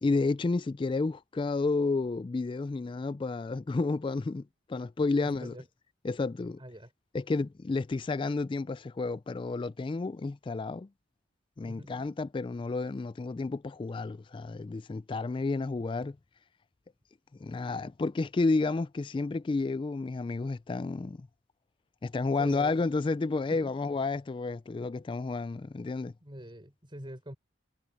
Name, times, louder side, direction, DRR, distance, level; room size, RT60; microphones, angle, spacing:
voice 1, 0.0-5.6 6.0-6.6 7.1-10.9 11.6-16.2 17.4-21.3 22.0-26.1, left 3 dB, 25° left, 0.3 m, -31 dB
voice 2, 5.2-5.6 6.6-6.9 11.7-12.0 22.4-22.8 23.5-23.7 26.2-27.4, equal, 25° right, 4.9 m, -44 dB
head